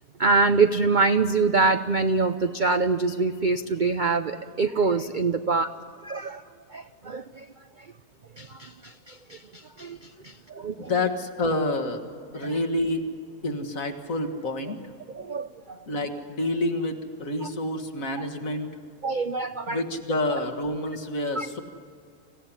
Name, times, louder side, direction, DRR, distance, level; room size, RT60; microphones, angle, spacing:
voice 1, 0.2-5.7 6.0-6.4 6.7-7.4 8.4-10.0 10.2-10.9 12.4-12.5 15.1-15.5 17.4-17.5 19.0-19.8 21.4-21.5, right 4 dB, 55° right, 9 dB, 0.5 m, -25 dB
voice 2, 10.8-12.0 12.3-13.0 13.4-14.8 15.9-18.7 19.7-21.6, left 2 dB, 55° left, 5 dB, 2.1 m, -28 dB
26.0 x 16.0 x 10.0 m, 2.3 s
omnidirectional pair, 1.7 m